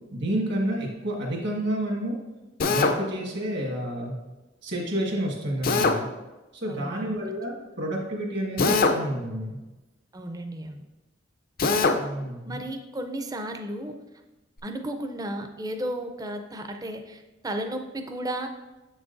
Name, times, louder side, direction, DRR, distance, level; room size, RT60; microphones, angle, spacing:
voice 1, 0.1-2.2 2.7-4.1 4.6-6.1 6.5-9.6 12.0-12.6, right 1 dB, 65° right, -1 dB, 1.6 m, -30 dB
Drill, 2.6-3.0 5.6-6.0 8.6-9.0 11.6-12.0, left 3 dB, 50° left, 0.5 m, -21 dB
voice 2, 6.7-7.2 10.1-10.8 12.5-14.0 14.6-18.5, right 1 dB, 20° right, 6 dB, 0.5 m, -34 dB
7.3 x 6.2 x 2.6 m, 1.1 s
head